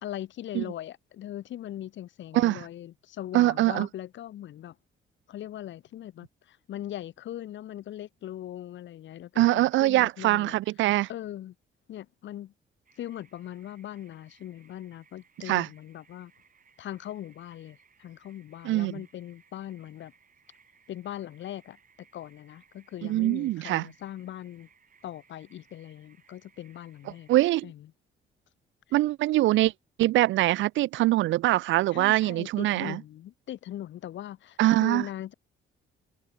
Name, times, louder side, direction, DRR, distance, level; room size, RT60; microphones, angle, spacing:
voice 1, 0.0-4.8 5.3-10.5 11.1-11.5 11.9-12.5 13.0-16.3 16.8-20.1 20.9-21.8 22.1-24.7 25.0-27.3 27.6-27.9 28.9-29.0 31.9-35.3, left 12 dB, 70° left, 1.2 m, -40 dB
voice 2, 3.3-3.9 9.4-11.1 15.5-15.7 18.6-18.9 23.1-23.8 27.3-27.7 28.9-29.7 30.0-33.0 34.6-35.0, right 16 dB, 75° right, 0.4 m, -23 dB
sound 1, 12.9-27.6, right 6 dB, 45° right, 6.6 m, -63 dB
cardioid pair, 90°, 20 cm